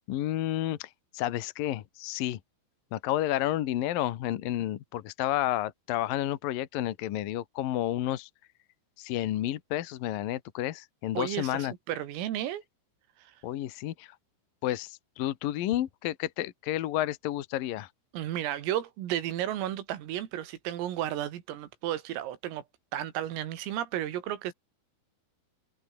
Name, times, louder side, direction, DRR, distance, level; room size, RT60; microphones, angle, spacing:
voice 1, 0.1-2.4 2.9-8.3 9.0-11.7 13.4-14.2 14.6-17.9, left 13 dB, 70° left, 2.2 m, -31 dB
voice 2, 11.2-12.6 13.2-13.3 18.1-22.6 22.9-24.5, right 12 dB, 90° right, 4.9 m, -33 dB
omnidirectional pair, 5.9 m